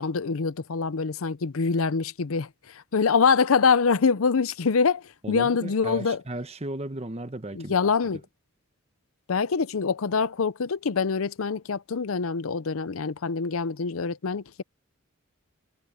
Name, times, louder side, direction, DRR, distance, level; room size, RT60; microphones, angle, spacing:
voice 1, 0.0-6.2 7.5-8.2 9.3-14.6, left 5 dB, 80° left, 0.6 m, -25 dB
voice 2, 5.2-7.7, right 1 dB, 30° right, 1.1 m, -35 dB
head